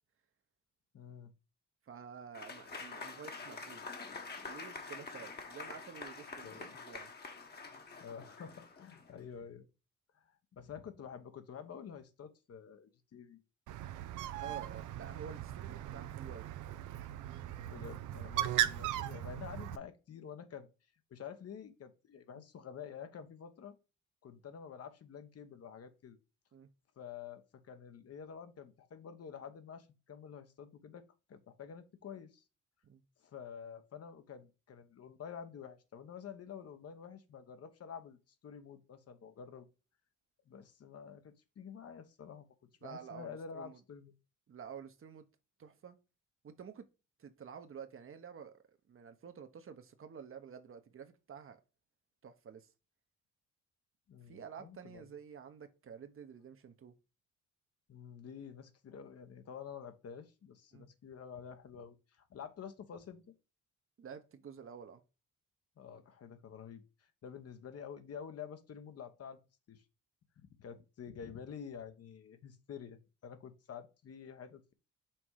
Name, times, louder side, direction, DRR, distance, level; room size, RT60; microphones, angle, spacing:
voice 1, 0.9-1.3 6.4-6.7 8.0-9.7 10.1-13.4 17.6-20.7 21.1-23.8 24.2-26.2 27.0-31.0 31.3-32.4 33.2-39.7 40.5-44.1 54.1-55.0 57.9-63.2 65.8-66.8 67.2-69.4 69.7-69.8 70.4-74.7, left 7 dB, 55° left, 1.1 m, -49 dB
voice 2, 1.8-3.8 4.4-7.3 14.4-16.5 22.3-22.4 26.5-26.7 32.8-33.0 42.8-43.8 44.5-45.3 45.6-46.0 46.4-46.9 47.2-51.6 52.2-52.7 54.3-56.9 60.7-60.9 64.0-65.0, right 7 dB, 45° right, 1.0 m, -50 dB
Applause / Crowd, 2.3-9.2, left 4 dB, 35° left, 1.2 m, -47 dB
Bird, 13.7-19.8, right 13 dB, 80° right, 0.6 m, -38 dB
5.9 x 3.5 x 4.7 m
cardioid pair, 90°, 30 cm